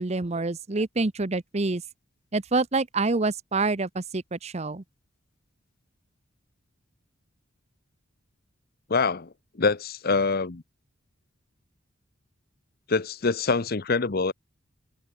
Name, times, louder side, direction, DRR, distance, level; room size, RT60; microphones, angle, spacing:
voice 1, 0.0-1.8 2.3-4.8, right 3 dB, 30° right, 0.8 m, -27 dB
voice 2, 8.9-9.3 9.6-10.6 12.9-14.3, left 4 dB, 45° left, 0.8 m, -25 dB
head